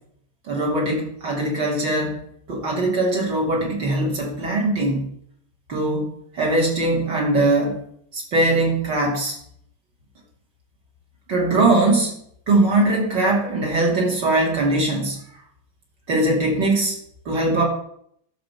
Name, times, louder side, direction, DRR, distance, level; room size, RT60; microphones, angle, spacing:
voice 1, 0.5-2.2 2.5-5.0 5.7-6.0 6.3-7.8 8.1-9.3 11.3-12.1 12.5-15.2 16.1-17.0 17.2-17.6, right 2 dB, 55° right, -2 dB, 3.2 m, -21 dB
11.5 x 5.1 x 7.2 m, 0.69 s
omnidirectional pair, 2.3 m